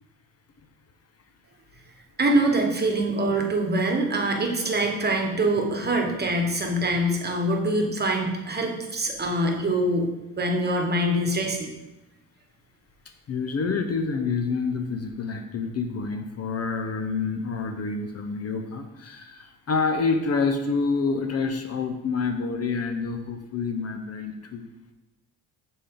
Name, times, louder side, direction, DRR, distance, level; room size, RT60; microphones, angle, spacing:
voice 1, 2.2-10.1 10.4-11.7, right 1 dB, 30° right, 2 dB, 1.4 m, -24 dB
voice 2, 13.3-24.7, left 4 dB, 45° left, 6 dB, 0.8 m, -27 dB
6.5 x 4.3 x 3.8 m, 1.0 s
supercardioid pair, 65°, 34 cm